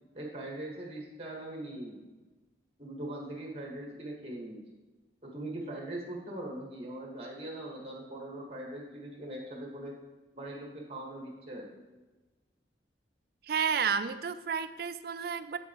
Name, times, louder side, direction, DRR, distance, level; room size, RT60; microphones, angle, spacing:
voice 1, 0.1-2.0 2.8-4.6 5.2-10.0 10.3-12.0, right 1 dB, 30° right, -1 dB, 1.7 m, -41 dB
voice 2, 13.4-15.6, right 6 dB, 55° right, 12 dB, 0.4 m, -31 dB
7.6 x 7.3 x 3.0 m, 1.2 s
head